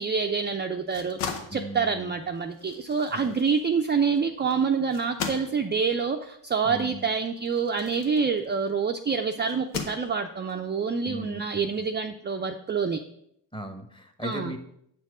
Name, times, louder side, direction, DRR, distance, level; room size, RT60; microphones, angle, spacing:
voice 1, 0.0-13.0 14.2-14.5, right 5 dB, 25° right, 4 dB, 0.5 m, -27 dB
sound 1, 0.7-8.8 9.5-10.5, left 6 dB, 90° left, 0.9 m, -39 dB
voice 2, 1.5-2.2 3.1-3.3 6.6-7.1 11.1-11.9 13.5-14.6, equal, 10° left, 7 dB, 1.1 m, -38 dB
7.4 x 4.4 x 4.9 m, 0.73 s
supercardioid pair, 65°, 46 cm